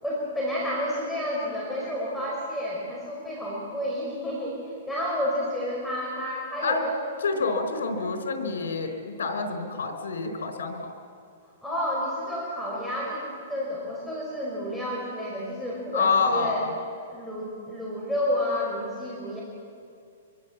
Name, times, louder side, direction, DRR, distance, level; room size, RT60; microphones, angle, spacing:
voice 1, 0.0-7.0 11.6-16.6 17.1-19.4, left 1 dB, 5° left, -5 dB, 5.2 m, -30 dB
voice 2, 7.2-10.9 15.9-16.7, left 4 dB, 85° left, 6 dB, 4.7 m, -27 dB
24.5 x 23.5 x 7.4 m, 2.4 s
hypercardioid pair, 150°, 0 cm